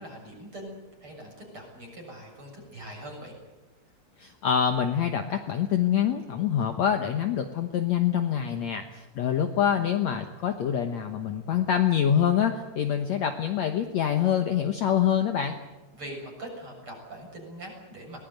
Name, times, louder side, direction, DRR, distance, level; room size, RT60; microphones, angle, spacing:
voice 1, 0.0-3.3 15.9-18.2, right 1 dB, 30° right, 1 dB, 7.8 m, -42 dB
voice 2, 4.2-15.6, left 9 dB, 80° left, 6 dB, 1.6 m, -25 dB
22.5 x 19.5 x 9.3 m, 1.1 s
omnidirectional pair, 4.9 m